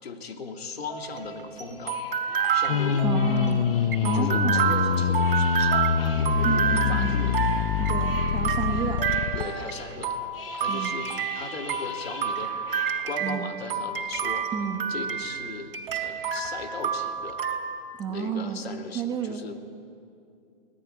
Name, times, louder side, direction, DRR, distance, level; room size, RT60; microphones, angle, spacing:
voice 1, 0.0-2.0 2.5-3.2 4.1-7.3 9.3-10.2 10.6-12.5 13.0-14.5 14.9-17.4 18.1-19.6, left 4 dB, 80° left, 4 dB, 2.8 m, -37 dB
sound 1, 0.9-17.6, right 7 dB, 60° right, 2.8 m, -29 dB
sound 2, 1.1-12.9, left 3 dB, 65° left, 6.5 m, -43 dB
sound 3, 2.7-9.4, left 8 dB, 40° left, 0.8 m, -25 dB
voice 2, 3.0-3.6 4.0-4.6 6.4-7.1 7.8-9.0 10.7-10.9 13.2-13.4 14.5-14.8 18.0-18.7 18.9-19.4, right 7 dB, 10° right, 5 dB, 1.0 m, -31 dB
23.0 x 18.0 x 9.4 m, 2.5 s
hypercardioid pair, 155°, 31 cm